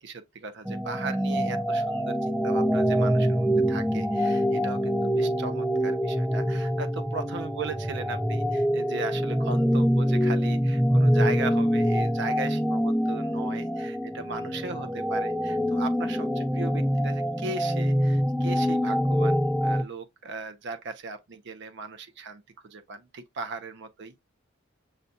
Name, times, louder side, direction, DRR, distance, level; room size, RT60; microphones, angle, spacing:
voice 1, 0.0-24.1, right 3 dB, 60° right, 0.6 m, -38 dB
sound 1, 0.6-19.8, equal, ahead, 0.3 m, -25 dB
6.5 x 2.3 x 2.7 m
head